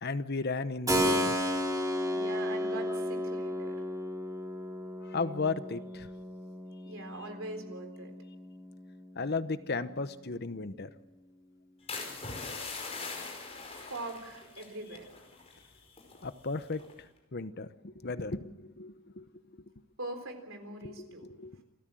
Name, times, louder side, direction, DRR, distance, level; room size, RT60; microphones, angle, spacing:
voice 1, 0.0-1.4 5.0-6.1 9.2-10.9 16.2-16.8 17.3-19.6 20.8-21.6, left 3 dB, 50° left, 13 dB, 0.9 m, -35 dB
Keyboard (musical), 0.9-9.5, equal, 15° right, 3.0 m, -33 dB
voice 2, 2.1-3.8 6.9-8.1 13.7-15.1 20.0-21.6, right 2 dB, 70° right, 6 dB, 4.0 m, -42 dB
sound 1, 11.9-15.6 15.9-16.3 16.7-17.0, left 4 dB, 30° left, 5.2 m, -41 dB
28.0 x 14.0 x 7.7 m, 1.0 s
head